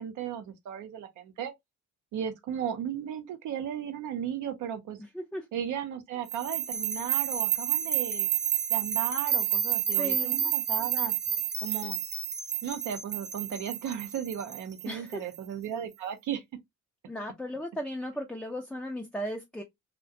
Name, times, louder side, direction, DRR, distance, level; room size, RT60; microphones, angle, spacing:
voice 1, 0.0-1.5 2.1-5.0 5.5-8.3 8.7-11.1 11.6-12.0 12.6-16.4, right 9 dB, 75° right, 0.6 m, -35 dB
sound 1, 6.3-15.4, right 9 dB, 35° right, 0.7 m, -30 dB
voice 2, 10.0-10.4 14.9-15.2 17.1-19.6, equal, 5° left, 0.4 m, -36 dB
2.4 x 2.1 x 2.6 m
cardioid pair, 90°, 30 cm